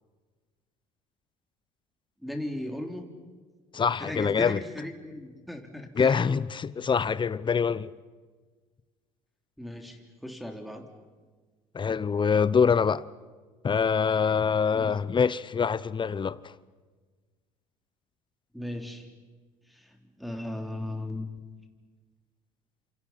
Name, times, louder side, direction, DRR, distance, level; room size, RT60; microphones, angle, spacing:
voice 1, 2.2-3.1 4.0-6.2 9.6-10.9 14.7-14.9 18.5-19.1 19.7-21.3, left 1 dB, ahead, 3.5 m, -37 dB
voice 2, 3.7-4.6 6.0-7.9 11.7-13.1 13.6-16.5, left 6 dB, 30° left, 0.9 m, -25 dB
28.5 x 28.0 x 5.9 m
hypercardioid pair, 70°, 16 cm